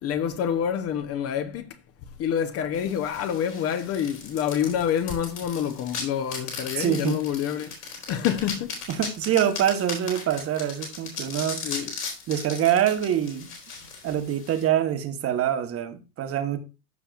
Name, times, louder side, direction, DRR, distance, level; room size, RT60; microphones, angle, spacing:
voice 1, 0.0-1.8 2.2-8.7 11.6-11.9, left 9 dB, 30° left, 0.9 m, -27 dB
sound 1, 2.7-14.6, left 5 dB, 75° left, 4.4 m, -37 dB
voice 2, 6.8-7.2 8.9-11.7 12.3-13.5 14.0-16.6, right 10 dB, 30° right, 1.2 m, -25 dB
14.5 x 5.7 x 2.4 m
hypercardioid pair, 100°, 46 cm